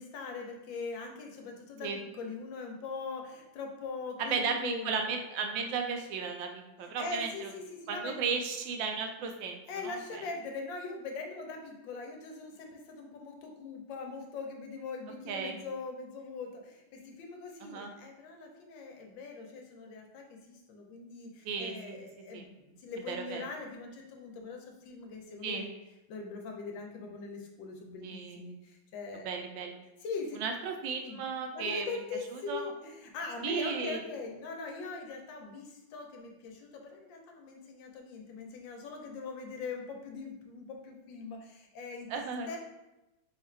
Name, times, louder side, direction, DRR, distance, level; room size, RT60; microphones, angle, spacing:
voice 1, 0.0-5.0 6.8-8.2 9.7-25.7 26.1-29.3 30.0-30.4 31.0-42.6, left 4 dB, 80° left, 2 dB, 1.4 m, -42 dB
voice 2, 4.2-7.5 7.9-10.2 15.3-15.6 17.6-17.9 21.4-21.9 22.3-22.4 23.1-23.4 25.4-25.7 28.0-28.5 29.2-29.7 30.4-31.9 32.3-32.7 33.4-34.0 42.1-42.6, right 5 dB, 85° right, 3 dB, 1.3 m, -35 dB
3.6 x 2.4 x 4.3 m, 0.98 s
omnidirectional pair, 2.1 m